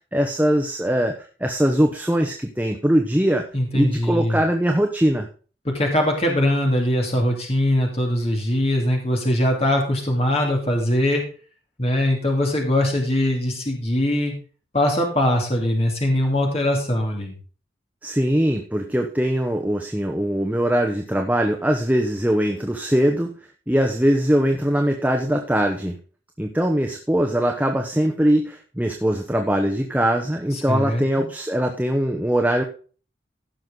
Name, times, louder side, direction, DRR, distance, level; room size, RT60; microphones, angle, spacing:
voice 1, 0.1-1.1 1.4-3.4 3.7-5.3 18.0-23.3 23.7-26.0 26.4-32.6, equal, 10° right, 3 dB, 1.0 m, -21 dB
voice 2, 3.5-4.4 5.6-11.2 11.8-14.3 14.7-17.3 30.5-31.0, left 1 dB, 35° left, 1 dB, 2.8 m, -21 dB
16.0 x 6.4 x 3.9 m, 0.38 s
head